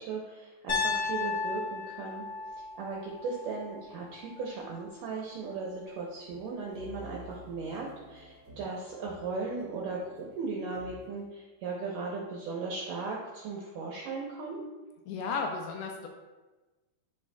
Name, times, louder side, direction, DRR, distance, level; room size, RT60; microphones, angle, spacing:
voice 1, 0.0-2.3 2.8-14.6, right 4 dB, 80° right, -2 dB, 1.9 m, -37 dB
Piano, 0.7-4.7, left 4 dB, 40° left, 1.8 m, -35 dB
sound 1, 6.3-11.2, right 2 dB, 55° right, 1.2 m, -51 dB
voice 2, 15.1-16.1, left 4 dB, 80° left, 2 dB, 2.4 m, -34 dB
12.5 x 4.2 x 2.2 m, 1.2 s
omnidirectional pair, 4.8 m